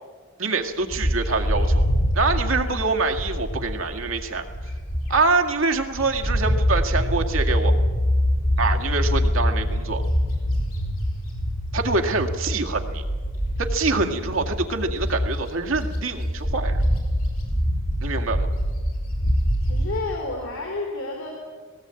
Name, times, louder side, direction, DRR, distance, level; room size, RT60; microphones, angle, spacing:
voice 1, 0.4-1.9 2.1-4.5 5.1-7.7 8.6-10.0 11.7-13.0 13.6-16.8 18.0-18.5, right 3 dB, 70° right, 4 dB, 2.0 m, -25 dB
Bird, 0.9-5.4 5.8-20.0, equal, 70° left, 5.9 m, -24 dB
voice 2, 19.6-21.3, left 2 dB, 85° left, 1 dB, 3.3 m, -31 dB
18.0 x 18.0 x 8.9 m, 1.5 s
head